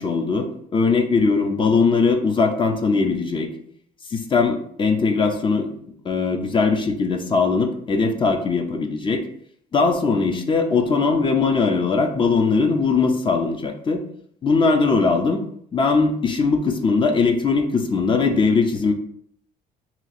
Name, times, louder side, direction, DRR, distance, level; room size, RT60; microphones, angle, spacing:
voice 1, 0.0-3.5 4.1-5.7 6.0-9.2 9.7-14.0 14.4-15.4 15.7-18.9, left 4 dB, 30° left, 5 dB, 0.5 m, -20 dB
2.8 x 2.8 x 4.1 m, 0.66 s
cardioid pair, 110°, 17 cm